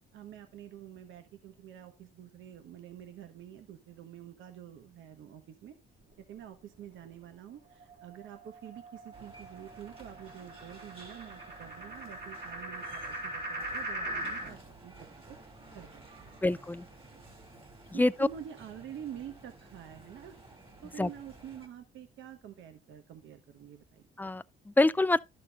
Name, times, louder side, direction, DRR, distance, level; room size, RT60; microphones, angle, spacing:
voice 1, 0.1-5.8 6.3-14.9 15.3-15.4 15.7-16.5 17.9-20.3 20.8-24.0, right 10 dB, 75° right, 1.1 m, -47 dB
sound 1, 7.8-14.5, right 1 dB, 55° right, 3.7 m, -41 dB
sound 2, 9.1-21.7, right 2 dB, 25° right, 2.3 m, -53 dB
voice 2, 16.4-16.8 17.9-18.3 21.0-21.1 24.2-25.2, left 2 dB, 10° left, 0.4 m, -26 dB
11.5 x 6.6 x 2.4 m
cardioid pair, 90°, 20 cm